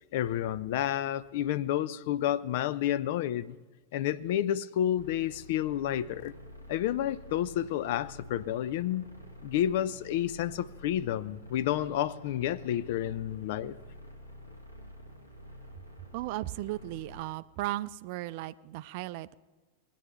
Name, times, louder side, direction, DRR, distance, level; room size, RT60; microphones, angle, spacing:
voice 1, 0.1-3.6 3.9-6.3 6.7-9.1 9.4-13.8, left 11 dB, 50° left, 18 dB, 0.4 m, -30 dB
sound 1, 4.9-17.2, equal, 85° left, 2.3 m, -49 dB
voice 2, 16.1-19.4, right 16 dB, 45° right, 16 dB, 0.4 m, -36 dB
19.5 x 10.0 x 3.3 m, 1.3 s
figure-of-eight pair, 90°, 0 cm